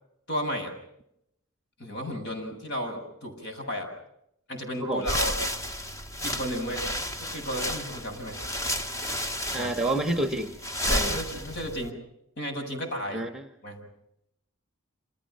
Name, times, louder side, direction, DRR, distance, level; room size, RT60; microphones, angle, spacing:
voice 1, 0.3-0.7 1.8-3.9 4.5-5.3 6.2-6.9 7.2-8.4 9.5-9.7 10.9-12.0 12.4-13.2 13.6-13.9, equal, 55° left, 5 dB, 7.8 m, -33 dB
sound 1, 5.0-11.9, equal, 15° left, 1.2 m, -32 dB
voice 2, 9.5-10.5 10.8-11.2 13.1-13.5, right 1 dB, ahead, 8 dB, 1.8 m, -29 dB
29.0 x 27.5 x 5.8 m, 0.78 s
head